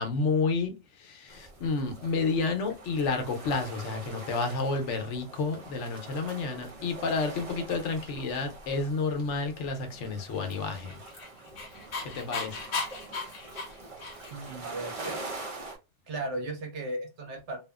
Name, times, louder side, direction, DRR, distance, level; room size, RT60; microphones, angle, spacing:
voice 1, 0.0-11.0 12.0-12.6, left 4 dB, 80° left, 1.0 m, -30 dB
sound 1, 1.3-15.8, right 3 dB, 35° right, 0.7 m, -44 dB
Dog, 10.7-14.5, left 3 dB, 55° left, 0.9 m, -36 dB
voice 2, 14.3-15.4 16.1-17.6, right 2 dB, 75° right, 1.1 m, -36 dB
2.8 x 2.4 x 2.3 m
omnidirectional pair, 1.2 m